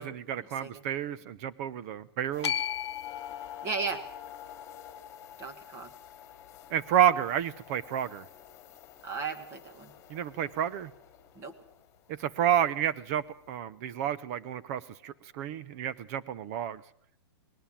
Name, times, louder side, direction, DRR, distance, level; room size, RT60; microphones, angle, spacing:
voice 1, 0.0-2.5 6.7-8.3 10.1-10.9 12.1-16.8, right 10 dB, 35° right, 16 dB, 0.9 m, -30 dB
sound 1, 2.3-12.9 15.0-15.1 15.6-15.8, left 10 dB, 20° left, 3.0 m, -51 dB
sound 2, 2.4-8.7, left 9 dB, 80° left, 0.9 m, -40 dB
voice 2, 3.6-4.0 5.4-5.9 9.0-9.9 11.4-11.5, right 4 dB, 20° right, 9 dB, 1.9 m, -35 dB
20.0 x 19.0 x 7.5 m, 0.65 s
hypercardioid pair, 155°, 14 cm